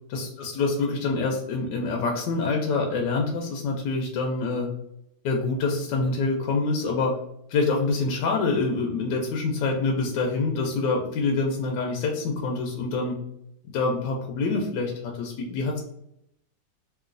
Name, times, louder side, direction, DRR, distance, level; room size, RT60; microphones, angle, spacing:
voice 1, 0.1-4.7 5.2-7.2 7.5-13.2 13.7-15.8, left 3 dB, 80° left, 0 dB, 1.2 m, -26 dB
3.0 x 2.9 x 2.4 m, 0.77 s
omnidirectional pair, 1.9 m